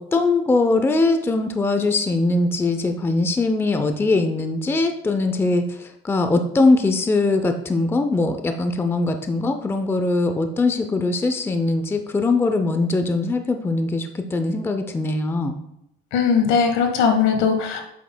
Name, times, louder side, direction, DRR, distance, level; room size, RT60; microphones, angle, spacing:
voice 1, 0.0-15.6, left 3 dB, 10° left, 7 dB, 0.5 m, -21 dB
voice 2, 16.1-17.8, left 6 dB, 75° left, 5 dB, 1.3 m, -19 dB
8.3 x 5.8 x 2.2 m, 0.80 s
cardioid pair, 130°, 20 cm